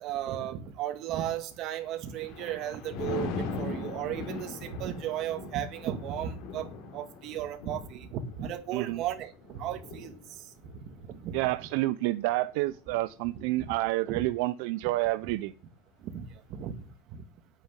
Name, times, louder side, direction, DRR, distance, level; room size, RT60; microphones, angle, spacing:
voice 1, 0.0-6.7 6.9-10.1 11.2-11.4 13.6-13.7 14.1-14.2 16.0-16.7, right 10 dB, 50° right, 2.0 m, -35 dB
Thunder, 1.8-13.3 13.8-14.1, left 4 dB, 65° left, 3.8 m, -41 dB
voice 2, 11.3-15.5, right 18 dB, 80° right, 0.5 m, -29 dB
9.1 x 8.2 x 8.8 m
cardioid pair, 145°, 0 cm